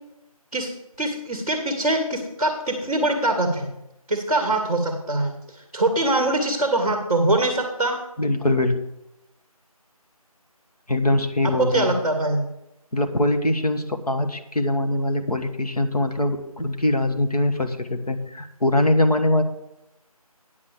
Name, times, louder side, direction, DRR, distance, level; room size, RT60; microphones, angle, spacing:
voice 1, 1.0-3.7 4.1-8.0 11.4-12.5, right 2 dB, 10° left, -11 dB, 1.0 m, -23 dB
voice 2, 8.2-8.8 10.9-11.9 12.9-19.4, left 1 dB, 80° left, 5 dB, 1.5 m, -22 dB
9.5 x 6.3 x 7.0 m, 0.86 s
figure-of-eight pair, 170°, 19 cm